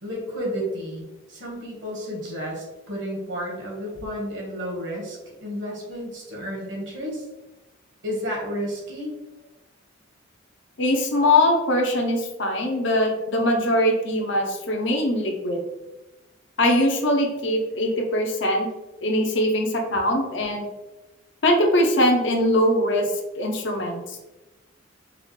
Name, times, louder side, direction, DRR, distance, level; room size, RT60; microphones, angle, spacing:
voice 1, 0.0-7.2 8.0-9.1, equal, 65° right, -2 dB, 1.4 m, -32 dB
voice 2, 10.8-15.6 16.6-18.7 19.0-20.7 21.4-23.0 23.4-24.2, left 1 dB, 65° left, 2 dB, 0.7 m, -22 dB
4.8 x 2.4 x 3.2 m, 1.0 s
head